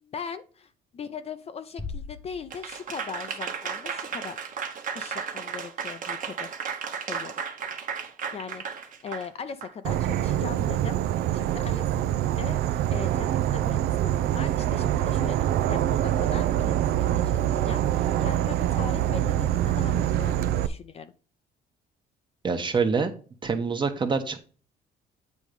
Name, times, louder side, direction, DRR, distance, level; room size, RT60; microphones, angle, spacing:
voice 1, 0.0-4.4 4.9-6.6 7.1-7.3 8.3-21.1, left 6 dB, 40° left, 10 dB, 0.6 m, -40 dB
sound 1, 1.8-3.2, left 4 dB, 5° left, 0.7 m, -39 dB
Applause / Crowd, 2.5-9.7, right 6 dB, 50° right, 1.2 m, -34 dB
Insect / Frog, 9.8-20.7, right 12 dB, 70° right, 0.5 m, -25 dB
voice 2, 22.4-23.1 23.4-24.4, right 5 dB, 30° right, 7 dB, 1.1 m, -25 dB
8.3 x 3.1 x 5.2 m, 0.38 s
cardioid pair, 110°, 17 cm